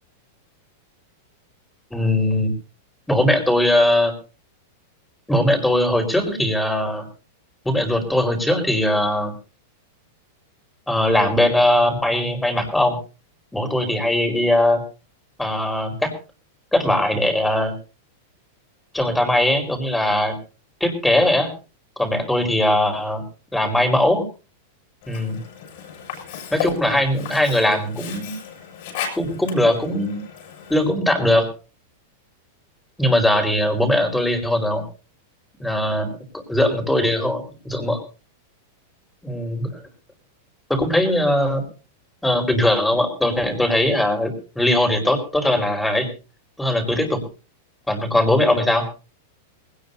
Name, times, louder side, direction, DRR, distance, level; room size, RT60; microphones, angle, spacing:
voice 1, 1.9-2.5 3.1-4.1 5.3-7.1 7.6-9.3 10.9-13.0 13.5-14.8 15.4-16.1 16.7-17.7 18.9-20.3 20.8-21.5 22.0-23.2 23.5-24.2 25.1-25.4 26.5-28.3 29.2-30.2 30.7-31.5 33.0-34.8 35.6-36.1 36.5-38.0 39.2-39.8 40.7-41.6 42.2-46.1 46.6-47.2 47.9-48.9, left 1 dB, 5° left, 4 dB, 4.7 m, -20 dB
Sink (filling or washing), 25.0-31.0, left 8 dB, 60° left, 6.6 m, -34 dB
20.0 x 18.5 x 2.8 m, 0.34 s
hypercardioid pair, 120°, 0 cm